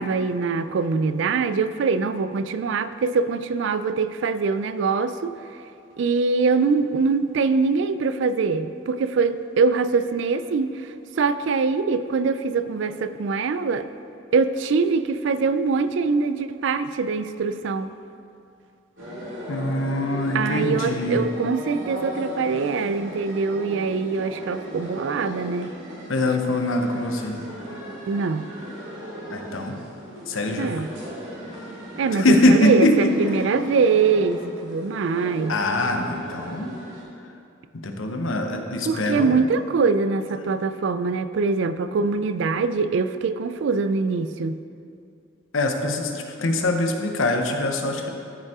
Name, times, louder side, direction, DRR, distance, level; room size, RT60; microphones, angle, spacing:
voice 1, 0.0-5.3 6.0-10.7 11.2-13.9 14.3-17.9 20.3-25.8 28.1-28.5 30.6-30.9 32.0-35.6 38.9-44.6, right 4 dB, 65° right, 12 dB, 0.3 m, -23 dB
sound 1, 19.0-37.0, equal, 85° right, 2.3 m, -37 dB
voice 2, 19.5-21.2 26.1-27.4 29.3-29.8 30.3-30.8 32.1-33.1 35.5-36.7 37.7-39.4 45.5-48.1, left 1 dB, 85° left, 4 dB, 0.9 m, -23 dB
13.5 x 5.4 x 3.6 m, 2.5 s
head